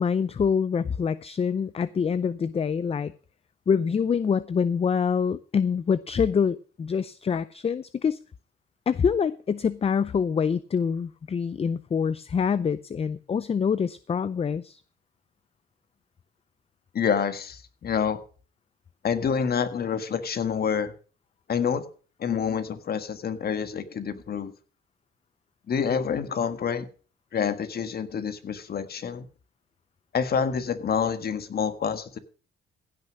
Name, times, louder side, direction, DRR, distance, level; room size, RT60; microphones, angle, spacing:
voice 1, 0.0-3.1 3.7-8.2 8.9-14.8, left 6 dB, 30° left, 0.5 m, -25 dB
voice 2, 16.9-18.2 19.0-20.9 21.5-21.8 22.2-24.5 25.7-26.9 27.3-29.3 30.1-32.2, left 7 dB, 50° left, 1.6 m, -27 dB
16.0 x 6.3 x 6.1 m
cardioid pair, 90°, 20 cm